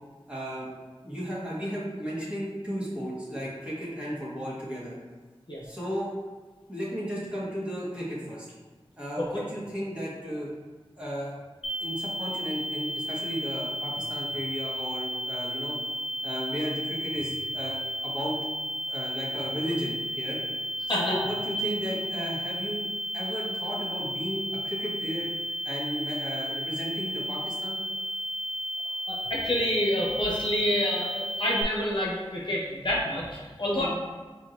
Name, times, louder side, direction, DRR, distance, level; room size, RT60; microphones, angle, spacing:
voice 1, 0.3-0.7 1.0-5.0 5.6-6.1 6.7-8.5 9.0-10.5 11.0-11.4 11.8-15.7 16.2-18.4 18.9-20.4 20.9-22.9 23.1-25.3 25.6-27.8 33.7-33.9, equal, 10° right, -8 dB, 1.5 m, -34 dB
sound 1, 11.6-31.6, equal, 80° left, 0.5 m, -33 dB
voice 2, 29.1-33.9, left 1 dB, 50° left, -5 dB, 1.0 m, -28 dB
5.0 x 2.9 x 2.6 m, 1.3 s
wide cardioid pair, 45°, 10 cm